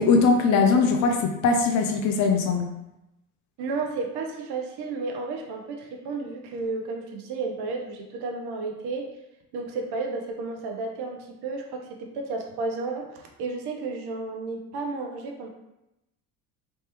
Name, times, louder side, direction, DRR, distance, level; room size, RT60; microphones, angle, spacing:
voice 1, 0.0-2.7, left 4 dB, 40° left, 3 dB, 0.6 m, -21 dB
voice 2, 3.6-9.1 9.5-15.5, right 3 dB, 60° right, 2 dB, 0.9 m, -32 dB
3.3 x 3.1 x 3.0 m, 0.91 s
hypercardioid pair, 65°, 44 cm